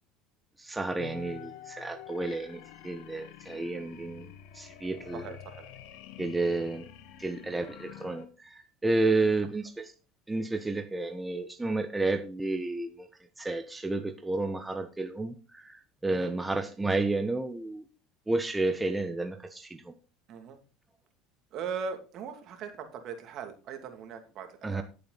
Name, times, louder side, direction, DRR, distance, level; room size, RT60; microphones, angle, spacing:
voice 1, 0.6-5.2 6.2-6.9 7.2-9.9 10.3-13.1 13.4-17.8 18.3-19.9 24.6-24.8, right 2 dB, 10° right, 7 dB, 1.1 m, -31 dB
sound 1, 1.0-8.3, left 11 dB, 70° left, 1.4 m, -48 dB
voice 2, 5.1-5.7 9.2-9.3 16.1-16.3 20.3-20.6 21.5-24.8, right 6 dB, 55° right, 6 dB, 2.6 m, -39 dB
14.0 x 6.9 x 4.1 m, 0.34 s
hypercardioid pair, 80°, 0 cm